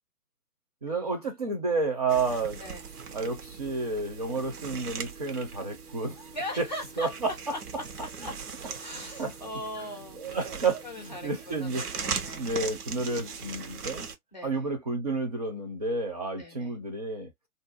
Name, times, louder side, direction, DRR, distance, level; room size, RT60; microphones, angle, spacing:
voice 1, 0.8-2.6 3.1-6.3 6.6-6.7 7.0-7.3 8.9-9.3 10.2-11.8 12.3-14.1 14.4-17.3, right 3 dB, 25° right, 0.5 m, -30 dB
sound 1, 2.1-14.1, right 6 dB, 75° right, 0.9 m, -40 dB
voice 2, 6.3-10.2 10.8-12.5 14.3-14.7 16.4-16.8, left 1 dB, 30° left, 0.4 m, -40 dB
2.5 x 2.2 x 2.4 m
figure-of-eight pair, 135°, 45 cm